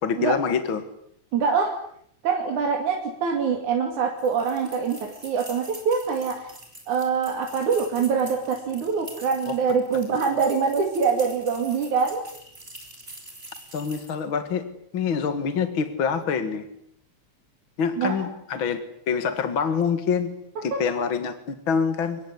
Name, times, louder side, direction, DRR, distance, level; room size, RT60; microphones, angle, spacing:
voice 1, 0.0-0.8 10.1-10.2 13.7-14.7 14.9-16.7 17.8-18.8 19.1-20.3 20.6-22.2, left 6 dB, 45° left, 9 dB, 2.3 m, -25 dB
voice 2, 1.3-1.7 2.2-6.5 6.9-12.2 18.0-18.3 20.7-20.8, right 5 dB, 80° right, 1 dB, 4.2 m, -24 dB
sound 1, 4.2-14.3, right 1 dB, 20° right, 6.7 m, -45 dB
25.5 x 22.0 x 9.8 m, 0.70 s
omnidirectional pair, 3.4 m